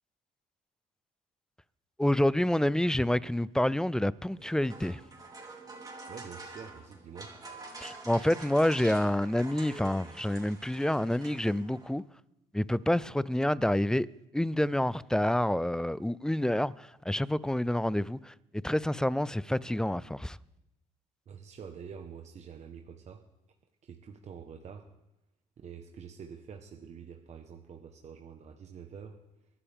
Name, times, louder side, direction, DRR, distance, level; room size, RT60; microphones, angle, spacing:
voice 1, 2.0-5.0 7.8-12.0 12.5-14.1 14.3-20.4, left 1 dB, 5° left, 0.4 m, -28 dB
sound 1, 4.3-11.9, right 3 dB, 25° right, 3.6 m, -47 dB
voice 2, 6.1-7.4 21.3-23.2 23.8-24.9 25.6-29.5, right 7 dB, 45° right, 1.2 m, -47 dB
23.0 x 12.0 x 3.6 m
supercardioid pair, 85°, 15 cm